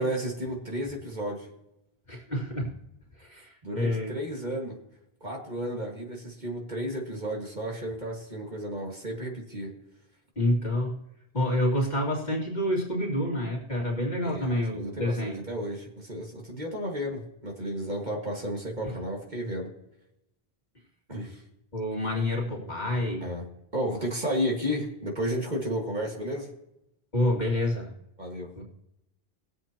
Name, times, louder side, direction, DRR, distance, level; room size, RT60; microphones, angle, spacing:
voice 1, 0.0-1.5 3.6-4.8 5.2-9.7 14.2-19.7 21.1-21.4 23.2-23.5 23.7-26.5 28.2-28.5, equal, 45° right, 0 dB, 2.1 m, -32 dB
voice 2, 2.1-2.8 3.2-4.1 10.4-11.0 11.3-15.4 21.7-23.3 27.1-27.9 28.5-28.6, left 1 dB, 45° left, -3 dB, 2.6 m, -28 dB
20.5 x 7.6 x 2.9 m, 0.86 s
omnidirectional pair, 1.0 m